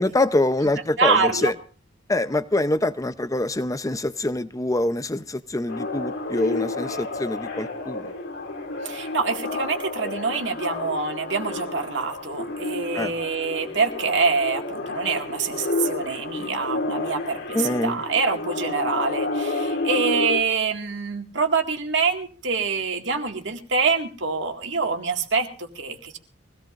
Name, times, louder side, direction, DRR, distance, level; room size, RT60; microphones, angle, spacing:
voice 1, 0.0-1.5 2.1-8.1 12.9-13.1 17.5-18.0, left 2 dB, 15° left, 12 dB, 0.7 m, -25 dB
voice 2, 1.0-1.5 8.8-26.2, right 4 dB, 65° right, 3 dB, 2.1 m, -25 dB
sound 1, 5.7-20.4, left 2 dB, 70° left, 2.7 m, -30 dB
23.5 x 17.5 x 2.6 m, 0.38 s
head